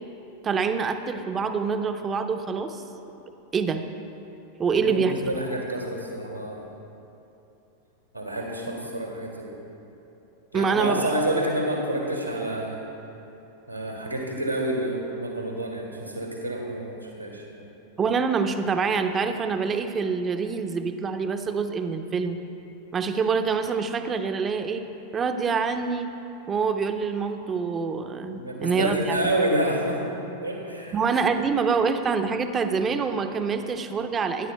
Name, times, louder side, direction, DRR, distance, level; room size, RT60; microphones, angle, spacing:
voice 1, 0.4-2.8 3.5-3.8 4.6-5.1 10.5-11.1 18.0-22.4 22.9-24.8 25.1-26.1 26.5-29.2 30.9-34.5, right 5 dB, 20° right, 7 dB, 0.7 m, -26 dB
voice 2, 4.7-6.7 8.1-9.6 10.5-12.8 13.7-17.7 28.3-30.0 30.4-31.0, right 1 dB, 90° right, -1 dB, 1.9 m, -28 dB
22.0 x 10.5 x 2.2 m, 3.0 s
figure-of-eight pair, 90°, 0 cm